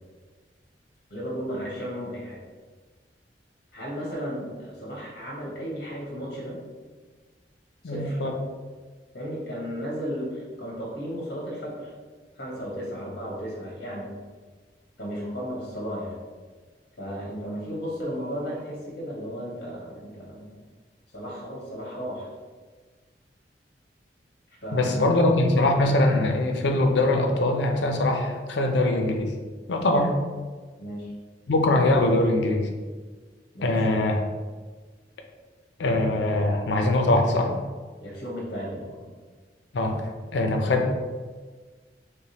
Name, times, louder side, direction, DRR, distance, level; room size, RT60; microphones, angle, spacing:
voice 1, 1.1-2.4 3.7-6.6 7.8-8.2 9.1-11.9 12.4-14.1 15.0-16.2 17.0-20.6 21.1-22.3 24.6-25.1 30.8-31.1 33.5-33.9 38.0-39.1, equal, 60° left, -4 dB, 1.1 m, -34 dB
voice 2, 7.8-8.4 24.7-29.3 29.7-30.1 31.5-32.7 33.6-34.2 35.8-37.5 39.7-40.0 40.3-40.9, left 2 dB, 80° left, 4 dB, 0.5 m, -22 dB
3.5 x 3.3 x 2.8 m, 1.4 s
head